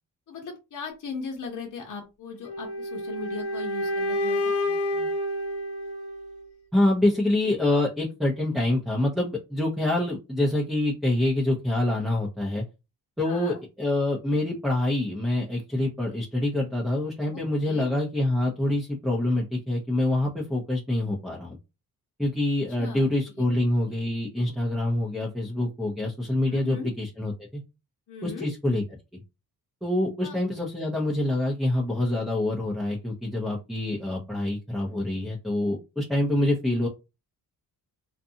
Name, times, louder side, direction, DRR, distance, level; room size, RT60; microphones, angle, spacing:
voice 1, 0.3-5.1 13.2-13.6 17.3-17.9 22.8-24.0 26.5-26.9 28.1-28.5 30.2-30.4, left 4 dB, 55° left, 1 dB, 0.9 m, -39 dB
sound 1, 2.4-6.5, left 1 dB, 85° left, 1.1 m, -29 dB
voice 2, 6.7-12.6 13.2-21.6 22.2-27.6 28.2-28.8 29.8-36.9, left 1 dB, ahead, -2 dB, 0.7 m, -26 dB
2.5 x 2.3 x 2.7 m, 0.26 s
cardioid pair, 95°, 38 cm